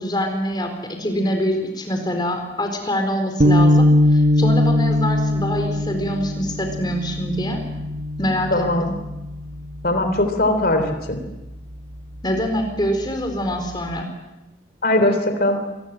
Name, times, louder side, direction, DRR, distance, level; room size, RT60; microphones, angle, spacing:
voice 1, 0.0-7.6 8.2-8.9 12.2-14.1, equal, 25° left, 4 dB, 4.2 m, -25 dB
sound 1, 3.4-9.8, left 1 dB, 40° right, 1.3 m, -20 dB
voice 2, 8.5-8.8 9.8-11.2 14.8-15.6, left 1 dB, 50° left, 7 dB, 3.3 m, -20 dB
26.0 x 20.5 x 7.8 m, 0.97 s
head